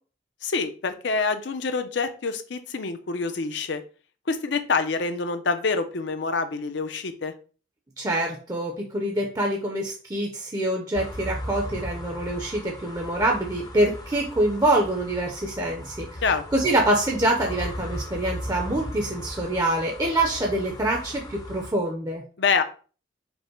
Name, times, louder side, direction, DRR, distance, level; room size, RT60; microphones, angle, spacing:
voice 1, 0.4-3.8 4.3-7.3 16.2-16.4 22.4-22.6, left 4 dB, 65° left, 9 dB, 0.6 m, -26 dB
voice 2, 8.0-16.1 16.5-22.2, right 1 dB, 20° right, 1 dB, 0.6 m, -25 dB
sound 1, 10.9-21.7, equal, 20° left, 0.6 m, -37 dB
5.2 x 2.1 x 4.4 m, 0.38 s
head